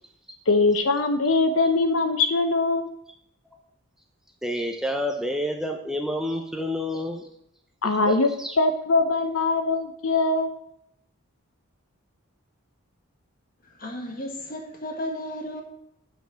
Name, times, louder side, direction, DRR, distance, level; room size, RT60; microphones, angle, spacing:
voice 1, 0.5-2.9 7.8-8.3 8.6-10.5, left 3 dB, 70° left, 8 dB, 0.8 m, -22 dB
voice 2, 4.4-7.3 8.1-8.6, left 1 dB, 5° right, 3 dB, 0.7 m, -29 dB
voice 3, 13.8-15.6, left 1 dB, 40° left, 3 dB, 1.7 m, -34 dB
9.1 x 5.3 x 6.2 m, 0.75 s
head